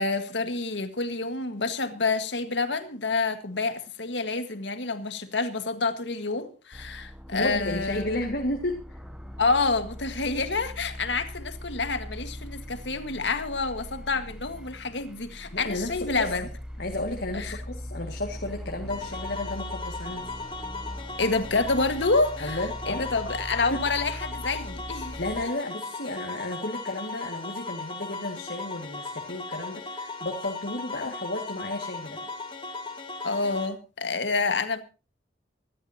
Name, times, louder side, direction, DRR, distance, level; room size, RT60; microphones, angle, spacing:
voice 1, 0.0-8.0 9.4-16.5 17.3-17.6 21.2-22.6 22.9-25.5 31.0-31.1 33.2-34.8, left 3 dB, 85° left, 1.8 m, -28 dB
sound 1, 6.7-25.5, equal, 5° right, 0.8 m, -40 dB
voice 2, 7.3-9.0 15.5-16.3 16.8-20.3 22.4-23.1 23.7-23.8 25.2-32.2, left 1 dB, 65° left, 2.1 m, -33 dB
sound 2, 18.9-33.7, left 3 dB, 30° left, 2.6 m, -37 dB
25.0 x 12.0 x 2.9 m
head